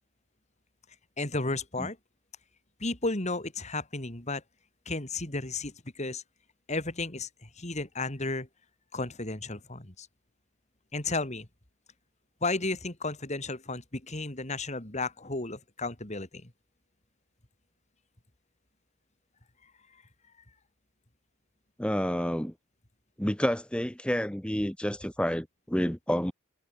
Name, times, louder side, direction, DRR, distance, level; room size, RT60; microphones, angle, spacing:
voice 1, 1.2-2.0 2.8-4.4 4.9-6.2 6.7-8.5 8.9-10.1 10.9-11.5 12.4-16.5, left 3 dB, 35° left, 2.9 m, -33 dB
voice 2, 21.8-22.5 23.2-26.3, equal, 5° left, 1.8 m, -29 dB
head